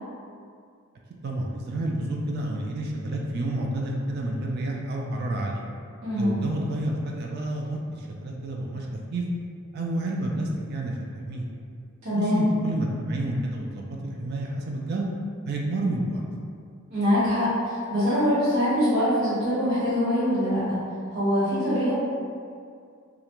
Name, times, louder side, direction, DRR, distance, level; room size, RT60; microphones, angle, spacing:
voice 1, 1.2-5.6 6.2-9.2 9.7-11.0 11.3-11.5 12.1-15.1 15.4-16.2, right 1 dB, 50° right, -1 dB, 0.3 m, -29 dB
voice 2, 6.0-6.4 12.0-12.4 16.9-20.8 21.1-21.9, equal, 65° right, -12 dB, 1.1 m, -23 dB
2.4 x 2.1 x 2.9 m, 2.3 s
head